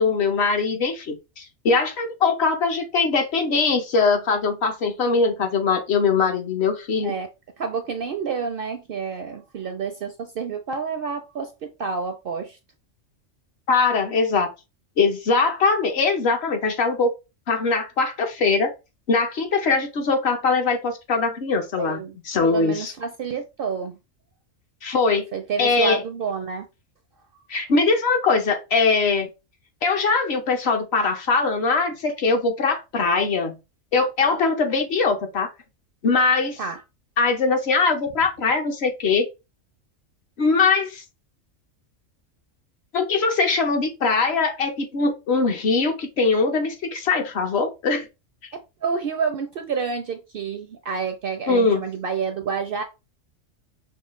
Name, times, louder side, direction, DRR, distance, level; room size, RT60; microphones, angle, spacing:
voice 1, 0.0-7.1 13.7-14.5 15.0-17.1 17.5-18.7 19.1-22.9 24.8-25.2 25.6-26.0 27.5-29.3 29.8-33.6 33.9-35.5 36.0-36.6 37.2-39.3 40.4-41.0 42.9-48.1 51.5-51.8, left 4 dB, 60° left, 1.0 m, -21 dB
voice 2, 7.6-12.6 21.8-22.2 22.4-24.0 25.3-26.7 36.6-36.8 48.8-52.8, right 5 dB, 60° right, 0.6 m, -29 dB
5.6 x 2.3 x 3.0 m
omnidirectional pair, 1.3 m